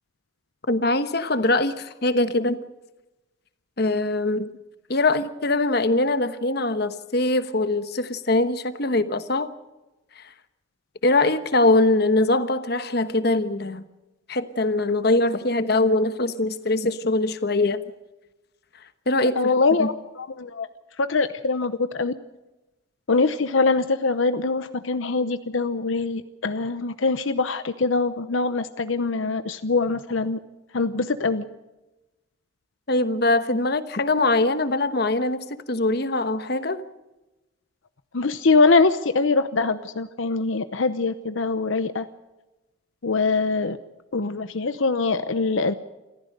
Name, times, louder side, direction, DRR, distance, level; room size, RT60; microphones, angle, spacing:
voice 1, 0.7-2.6 3.8-4.5 4.9-9.5 10.2-10.3 11.0-13.8 14.3-17.8 19.1-19.4 19.8-19.9 32.9-36.8, left 2 dB, 50° left, 12 dB, 1.2 m, -22 dB
voice 2, 19.4-20.7 21.0-22.1 23.1-30.4 30.7-31.5 38.1-42.1 43.0-43.8 44.1-45.7, left 3 dB, 75° left, 11 dB, 0.8 m, -23 dB
27.0 x 14.5 x 6.7 m, 1.0 s
head